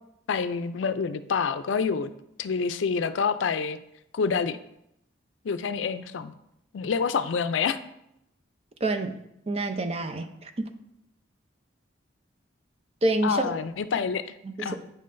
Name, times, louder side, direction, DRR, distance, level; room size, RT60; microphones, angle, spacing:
voice 1, 0.3-2.1 2.4-3.8 4.1-4.6 5.4-6.3 6.7-7.8 13.2-14.8, left 5 dB, 85° left, 12 dB, 0.4 m, -27 dB
voice 2, 8.8-9.2 9.5-10.7 13.0-13.6 14.4-14.8, right 2 dB, 35° right, 6 dB, 0.5 m, -27 dB
9.1 x 5.5 x 2.6 m, 0.80 s
head